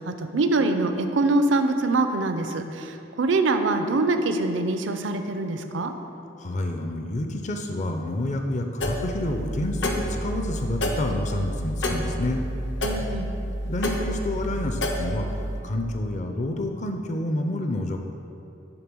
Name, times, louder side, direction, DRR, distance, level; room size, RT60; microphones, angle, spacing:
voice 1, 0.1-5.9 12.8-13.3, right 2 dB, 80° right, 7 dB, 0.6 m, -24 dB
voice 2, 6.4-12.4 13.7-18.0, left 1 dB, 40° left, 4 dB, 0.5 m, -29 dB
grandfather clock chimes, 8.8-15.6, equal, 75° left, 0.9 m, -29 dB
10.5 x 3.7 x 6.1 m, 2.7 s
head